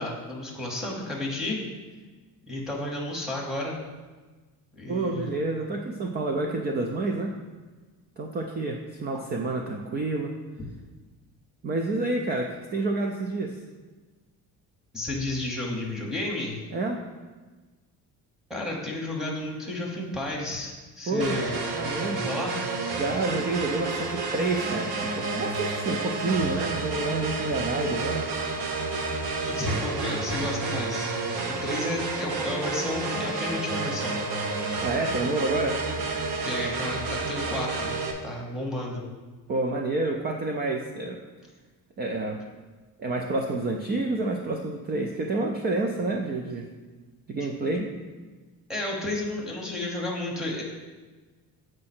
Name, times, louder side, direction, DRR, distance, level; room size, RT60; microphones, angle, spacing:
voice 1, 0.0-1.6 2.5-3.8 4.7-5.3 14.9-16.6 18.5-21.5 22.0-22.6 29.4-31.2 31.6-34.1 36.4-37.9 38.2-39.0 47.7-47.8 48.7-50.6, left 1 dB, ahead, -4 dB, 1.1 m, -32 dB
voice 2, 4.9-7.4 8.2-10.3 11.6-13.6 16.7-17.0 21.1-21.4 21.7-22.3 23.0-28.3 34.8-35.8 39.5-41.2 42.0-42.4 43.0-46.7 47.3-47.8, right 2 dB, 30° right, 2 dB, 0.4 m, -29 dB
sound 1, 21.2-38.1, right 3 dB, 90° right, 1.0 m, -30 dB
7.6 x 4.8 x 4.3 m, 1.3 s
cardioid pair, 175°, 37 cm